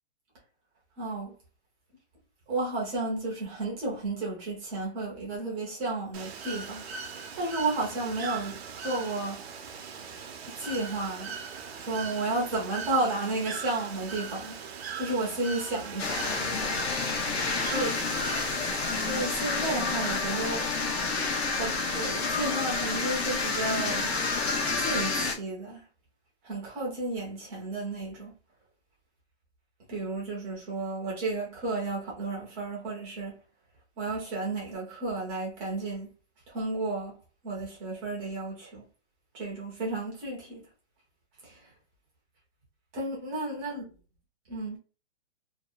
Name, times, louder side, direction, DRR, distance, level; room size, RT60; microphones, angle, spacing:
voice 1, 1.0-1.3 2.5-9.5 10.5-11.3 11.7-16.7 17.6-18.1 18.6-20.7 21.6-24.1 24.8-25.8 26.4-28.3 29.9-33.4 34.0-36.1 36.5-38.8 39.3-40.6 41.4-41.7 42.9-43.9 44.5-44.8, right 2 dB, 10° right, 0.5 m, -33 dB
Bird / Water, 6.1-19.3, right 6 dB, 65° right, 0.6 m, -40 dB
sound 1, 16.0-25.3, left 4 dB, 65° left, 0.8 m, -29 dB
2.7 x 2.1 x 2.3 m
hypercardioid pair, 165°, 34 cm